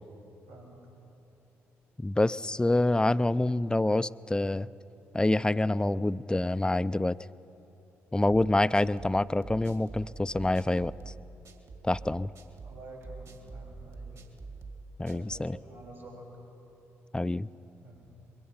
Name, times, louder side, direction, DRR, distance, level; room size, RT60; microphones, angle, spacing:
voice 1, 0.5-0.8 12.2-12.3 12.6-14.1 15.1-16.3 17.8-18.1, right 1 dB, 90° right, -7 dB, 6.4 m, -49 dB
voice 2, 2.0-4.7 5.1-7.2 8.1-11.1 11.8-12.3 15.0-15.6 17.1-17.5, left 2 dB, 10° left, 16 dB, 0.5 m, -26 dB
sound 1, 8.7-15.5, right 4 dB, 50° right, 2.3 m, -46 dB
25.0 x 22.0 x 5.7 m, 3.0 s
hypercardioid pair, 45°, 7 cm